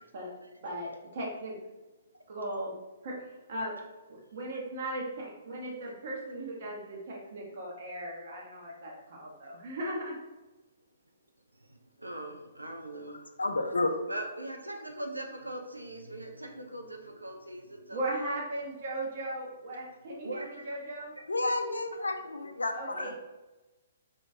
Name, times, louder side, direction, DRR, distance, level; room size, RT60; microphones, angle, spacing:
voice 1, 0.6-1.5 2.3-2.7 3.0-3.2 3.5-3.7 4.3-10.2 17.9-21.2 22.7-23.2, right 1 dB, 50° right, -3 dB, 1.1 m, -37 dB
voice 2, 11.5-13.2 14.1-18.4 20.2-20.8 21.1-21.3 22.0-22.1, right 1 dB, 85° right, 3 dB, 0.4 m, -41 dB
voice 3, 13.4-14.0 21.3-23.2, left 2 dB, 75° left, 6 dB, 0.4 m, -31 dB
4.1 x 3.1 x 2.7 m, 1.1 s
figure-of-eight pair, 120°, 0 cm